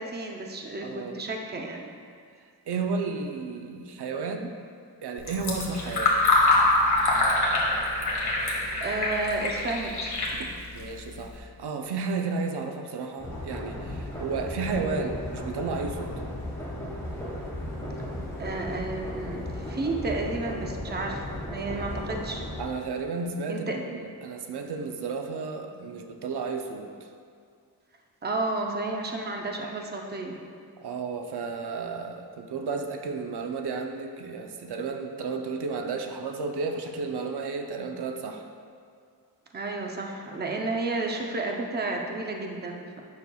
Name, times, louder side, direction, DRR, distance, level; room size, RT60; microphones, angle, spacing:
voice 1, 0.0-1.8 8.8-10.1 18.4-22.4 23.5-23.8 28.2-30.4 39.5-43.0, right 2 dB, 25° right, 1 dB, 0.6 m, -32 dB
voice 2, 0.8-1.2 2.7-4.5 5.0-6.2 10.3-16.1 22.6-26.9 30.8-38.4, right 4 dB, 85° right, 4 dB, 0.6 m, -32 dB
Fill (with liquid), 5.2-11.4, left 2 dB, 80° left, 1.4 m, -25 dB
sound 1, 13.2-22.6, left 1 dB, 5° left, 1.4 m, -35 dB
9.5 x 6.4 x 2.3 m, 2.2 s
wide cardioid pair, 130°, 38 cm